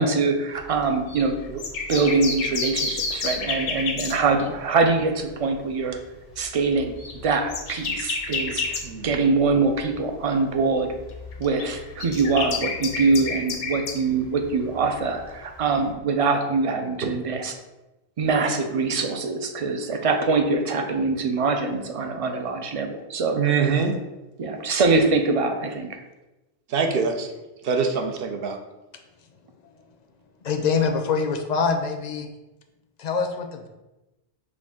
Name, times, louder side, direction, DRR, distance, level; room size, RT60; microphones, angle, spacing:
voice 1, 0.0-1.4 1.9-6.0 6.4-11.0 11.4-17.5 18.2-23.8 24.4-26.0, right 4 dB, 50° right, 5 dB, 0.4 m, -23 dB
sound 1, 0.5-4.9 5.2-5.4 5.9-10.3 10.5-15.9, left 4 dB, 90° left, 0.9 m, -31 dB
voice 2, 23.3-24.0 26.7-27.3 27.6-28.6, right 5 dB, 70° right, 4 dB, 0.8 m, -24 dB
voice 3, 30.4-32.3 33.0-33.7, left 5 dB, 55° left, 4 dB, 0.5 m, -24 dB
6.0 x 2.4 x 3.6 m, 1.0 s
omnidirectional pair, 1.0 m